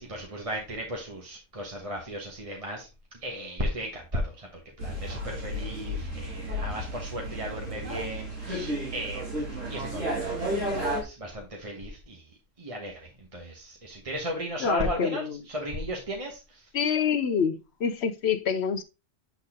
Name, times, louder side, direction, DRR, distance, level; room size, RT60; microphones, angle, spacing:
voice 1, 0.0-2.9 3.2-4.5 4.8-9.3 9.7-10.0 10.3-12.3 12.6-16.6, equal, 30° right, 1.3 m, -35 dB
sound 1, 4.8-11.0, equal, 75° right, 2.9 m, -32 dB
voice 2, 14.6-15.3 16.7-17.6 17.8-18.8, left 6 dB, 60° left, 0.9 m, -26 dB
8.3 x 4.1 x 3.7 m
omnidirectional pair, 1.3 m